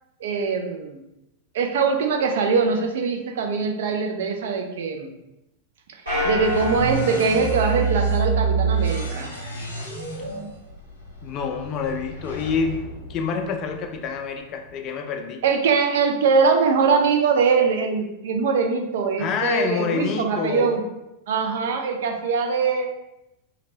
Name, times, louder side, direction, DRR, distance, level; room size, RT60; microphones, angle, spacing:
voice 1, 0.2-1.0 1.5-5.1 6.2-9.3 15.4-20.8 21.3-22.9, right 5 dB, 55° right, 3 dB, 0.4 m, -22 dB
sound 1, 6.1-14.0, right 5 dB, 80° left, 0.7 m, -28 dB
sound 2, 6.1-8.8, left 2 dB, 80° right, 1.2 m, -30 dB
voice 2, 11.2-12.8 13.1-15.4 19.2-20.8, left 5 dB, 35° left, 4 dB, 0.4 m, -27 dB
2.8 x 2.5 x 2.9 m, 0.92 s
figure-of-eight pair, 90°, 0 cm